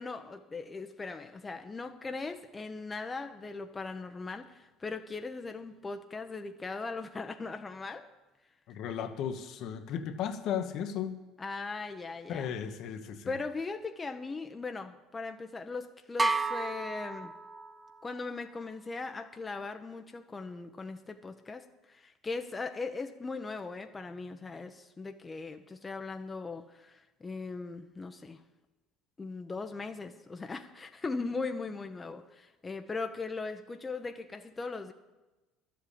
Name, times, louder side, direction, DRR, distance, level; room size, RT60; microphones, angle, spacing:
voice 1, 0.0-8.1 11.4-12.5 13.2-17.3 18.0-28.4 29.2-34.9, left 3 dB, 25° left, 7 dB, 0.9 m, -39 dB
voice 2, 8.7-11.2 12.3-13.3, left 8 dB, 60° left, 7 dB, 1.2 m, -35 dB
sound 1, 16.2-18.0, right 3 dB, 15° right, 0.9 m, -31 dB
12.0 x 7.8 x 8.5 m, 1.1 s
hypercardioid pair, 75°, 0 cm